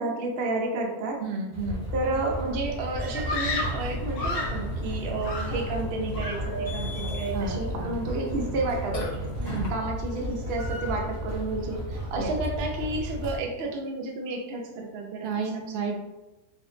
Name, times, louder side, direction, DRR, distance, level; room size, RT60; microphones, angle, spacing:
voice 1, 0.0-1.2 1.9-9.0 9.7-16.0, right 2 dB, 55° right, 0 dB, 0.7 m, -31 dB
voice 2, 1.2-1.8 7.3-7.9 9.4-9.7 12.2-12.4 15.2-16.0, right 4 dB, 85° right, 3 dB, 1.1 m, -32 dB
sound 1, 1.5-13.4, equal, 25° right, 0.3 m, -34 dB
Screaming, 3.3-4.7 5.2-5.9 6.1-6.6, left 2 dB, 70° left, 0.5 m, -32 dB
Burping eructation, 3.3-9.7, right 1 dB, 35° left, 0.8 m, -36 dB
4.6 x 2.5 x 2.7 m, 1.0 s
omnidirectional pair, 1.6 m